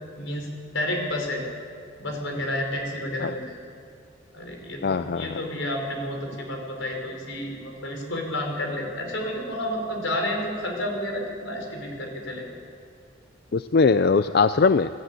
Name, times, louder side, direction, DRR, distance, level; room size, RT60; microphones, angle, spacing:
voice 1, 0.2-1.4 2.0-3.6 4.3-12.4, left 1 dB, 80° left, 2 dB, 4.7 m, -30 dB
voice 2, 4.8-5.4 13.5-14.9, left 4 dB, 55° left, 12 dB, 0.4 m, -20 dB
22.5 x 13.0 x 9.2 m, 2.3 s
head